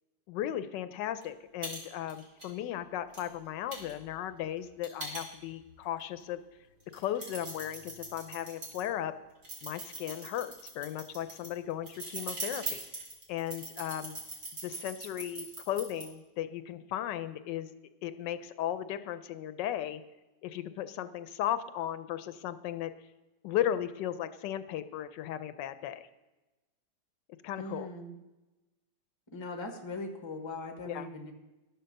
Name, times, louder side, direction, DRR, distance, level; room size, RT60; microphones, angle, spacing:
voice 1, 0.3-6.4 6.9-9.1 9.6-12.8 13.3-14.2 14.6-17.7 18.0-20.0 20.4-22.9 23.4-26.1 27.4-27.9 30.9-31.1, left 11 dB, 85° left, 12 dB, 1.3 m, -36 dB
sound 1, 1.2-1.3 1.6-1.8 2.1-2.5 3.1-3.2 3.7-5.7 6.2-6.3 6.8-8.8 9.4-16.0, right 2 dB, 50° right, 2.8 m, -41 dB
voice 2, 27.6-28.1 29.3-31.3, left 2 dB, 20° left, 4 dB, 0.9 m, -40 dB
11.0 x 6.8 x 6.5 m, 1.1 s
omnidirectional pair, 1.9 m